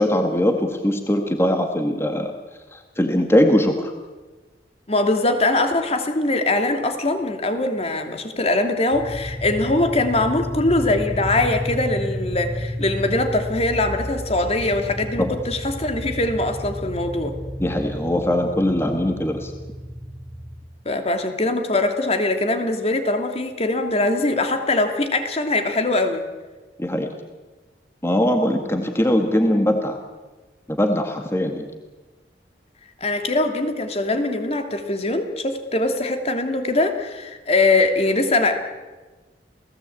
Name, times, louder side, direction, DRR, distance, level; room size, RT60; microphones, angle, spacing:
voice 1, 0.0-2.3 2.7-3.9 15.2-15.3 17.6-19.5 26.8-27.1 28.0-30.0 30.7-31.6, left 1 dB, 15° left, 5 dB, 1.9 m, -21 dB
voice 2, 4.9-17.3 20.8-26.2 33.0-38.5, left 2 dB, 35° left, 6 dB, 2.7 m, -22 dB
sound 1, 8.9-20.6, equal, 80° left, 6.4 m, -31 dB
29.0 x 18.5 x 8.7 m, 1.3 s
head